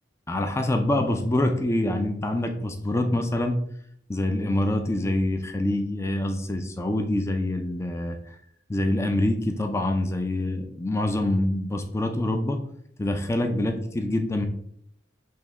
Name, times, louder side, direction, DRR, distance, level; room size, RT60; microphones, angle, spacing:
voice 1, 0.3-3.6 4.1-8.2 8.7-12.6 13.0-14.5, left 1 dB, 15° left, 5 dB, 0.4 m, -25 dB
5.3 x 2.8 x 3.5 m, 0.68 s
head